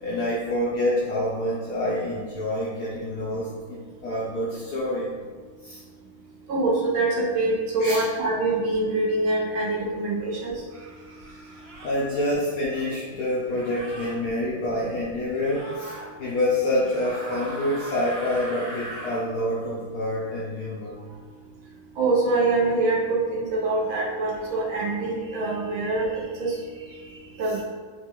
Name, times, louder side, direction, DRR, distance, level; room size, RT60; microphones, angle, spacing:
voice 1, 0.0-5.1 5.6-5.8 7.8-8.0 11.8-15.9 16.2-20.9, left 1 dB, 75° left, -7 dB, 0.9 m, -27 dB
voice 2, 6.5-10.5 22.0-26.5 27.4-27.6, right 2 dB, 80° right, -4 dB, 1.6 m, -24 dB
sound 1, 10.2-10.3 11.6-12.0 13.5-14.1 15.3-16.1 16.8-19.2, right 1 dB, 35° right, 1.0 m, -39 dB
4.2 x 2.3 x 2.9 m, 1.5 s
omnidirectional pair, 2.3 m